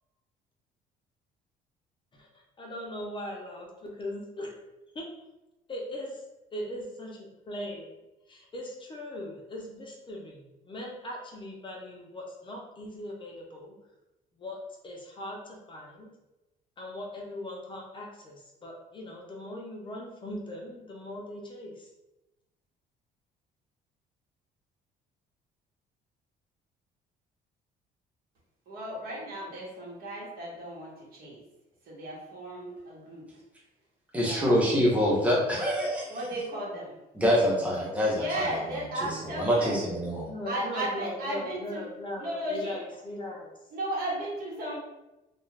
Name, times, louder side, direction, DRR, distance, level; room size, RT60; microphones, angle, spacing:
voice 1, 2.1-4.5 4.9-5.1 5.7-6.2 6.5-7.9 8.3-13.8 14.3-16.1 16.8-21.9 40.3-43.5, left 1 dB, 30° left, -1 dB, 0.6 m, -39 dB
voice 2, 28.7-31.4 31.8-33.3 34.2-34.6 36.1-37.0 37.4-37.5 38.1-39.8 40.5-41.8 42.2-42.8 43.7-44.8, right 1 dB, 60° right, -4 dB, 1.1 m, -35 dB
voice 3, 34.1-36.2 37.1-38.5 39.3-40.3, equal, 10° right, -5 dB, 0.9 m, -25 dB
2.4 x 2.3 x 3.2 m, 0.97 s
cardioid pair, 110°, 17 cm